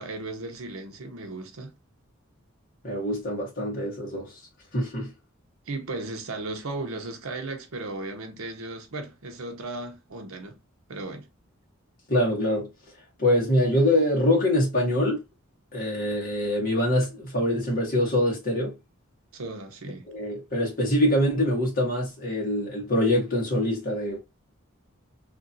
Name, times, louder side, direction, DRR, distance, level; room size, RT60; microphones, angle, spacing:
voice 1, 0.0-1.7 5.7-10.6 10.9-11.3 19.3-20.1, right 2 dB, 80° right, 0.8 m, -36 dB
voice 2, 2.8-4.3 4.7-5.1 12.1-12.7 13.2-15.2 15.7-18.8 20.0-24.2, left 1 dB, 40° left, 1.4 m, -24 dB
2.9 x 2.6 x 2.6 m
head